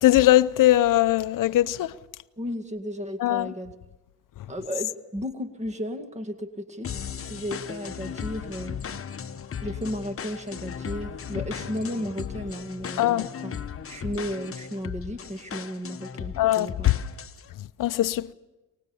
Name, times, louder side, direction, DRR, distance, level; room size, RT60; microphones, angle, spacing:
voice 1, 0.0-1.9 3.2-3.5 13.0-13.3 16.4-16.9 17.8-18.3, left 14 dB, 55° left, 0.8 m, -20 dB
voice 2, 2.4-3.7 4.5-6.9 7.3-8.8 9.6-16.9, equal, 15° right, 2.1 m, -34 dB
sound 1, 6.8-17.5, left 7 dB, 35° left, 1.1 m, -36 dB
24.0 x 19.5 x 7.1 m
supercardioid pair, 80°, 40 cm